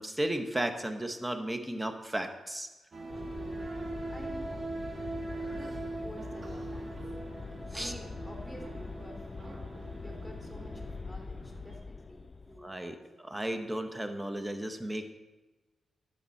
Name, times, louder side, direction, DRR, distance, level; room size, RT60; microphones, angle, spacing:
voice 1, 0.0-2.7 5.5-5.8 7.7-7.9 12.6-15.1, right 1 dB, 15° right, 7 dB, 1.5 m, -35 dB
sound 1, 2.9-11.0, right 3 dB, 45° right, 1.8 m, -41 dB
sound 2, 3.1-12.7, left 3 dB, 40° left, 0.4 m, -43 dB
sound 3, 3.8-11.8, equal, 85° right, 1.9 m, -56 dB
voice 2, 4.1-4.8 5.9-6.9 7.7-13.3, equal, 5° left, 1 dB, 3.1 m, -50 dB
12.0 x 8.5 x 4.4 m, 1.1 s
supercardioid pair, 50°, 0 cm